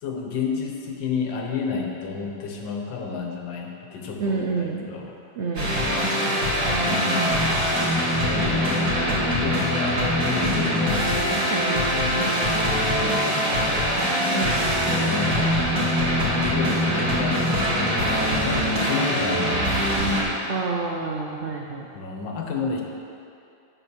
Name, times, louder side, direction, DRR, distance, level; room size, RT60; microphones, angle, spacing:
voice 1, 0.0-5.2 6.8-7.3 8.3-11.3 11.9-13.8 15.0-15.6 16.2-19.9 21.9-22.8, left 5 dB, 90° left, 1 dB, 1.7 m, -31 dB
voice 2, 4.2-4.9 5.4-5.8 11.5-11.8 14.3-14.6 20.5-21.9, right 4 dB, 80° right, 0 dB, 0.6 m, -28 dB
sound 1, 5.6-20.2, equal, 60° right, 2.5 m, -23 dB
8.6 x 5.3 x 6.2 m, 2.6 s
omnidirectional pair, 1.9 m